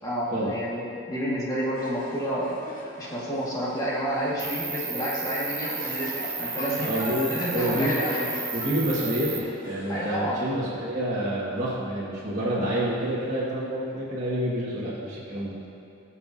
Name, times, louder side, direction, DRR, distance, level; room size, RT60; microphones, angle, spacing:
voice 1, 0.0-2.6 3.0-6.9 7.3-8.3 9.9-10.4, equal, 20° left, -7 dB, 1.9 m, -30 dB
sound 1, 1.7-10.1, left 1 dB, 40° left, 1.3 m, -39 dB
Cricket, 4.4-9.4, right 5 dB, 15° right, 0.5 m, -33 dB
voice 2, 6.8-8.0 8.5-15.6, equal, 35° right, -9 dB, 1.9 m, -28 dB
16.0 x 7.1 x 2.8 m, 2.8 s
head